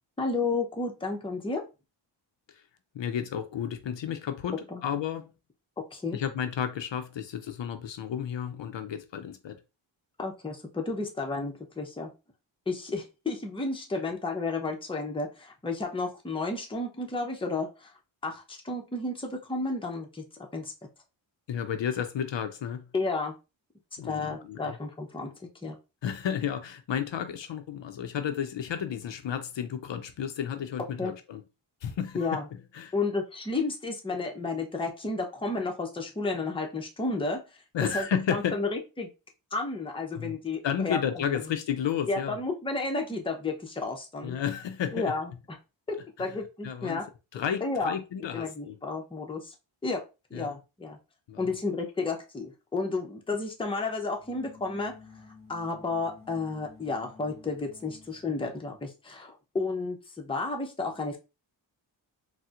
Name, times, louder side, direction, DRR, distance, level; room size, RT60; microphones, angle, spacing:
voice 1, 0.2-1.7 4.7-4.8 5.9-6.2 10.2-12.1 12.7-17.9 18.2-20.2 20.5-20.7 22.9-23.3 24.0-25.3 25.6-25.8 31.0-31.1 32.1-32.5 32.9-37.4 37.8-39.1 39.5-41.5 42.1-44.4 44.9-45.3 46.2-47.1 47.6-47.9 48.3-49.5 49.8-51.0 51.4-55.0 55.5-61.2, left 3 dB, 10° left, 0.6 m, -32 dB
voice 2, 2.9-5.3 6.1-9.6 21.5-22.9 24.0-24.8 26.0-31.4 31.8-32.3 32.7-32.9 37.7-38.6 40.2-40.4 40.6-42.4 44.2-45.1 46.2-46.3 46.6-47.0 47.3-48.8 50.3-50.5 51.3-51.5, left 8 dB, 65° left, 0.5 m, -32 dB
sound 1, 54.1-58.9, left 5 dB, 25° right, 1.9 m, -52 dB
4.2 x 2.1 x 2.4 m
wide cardioid pair, 100°, 47 cm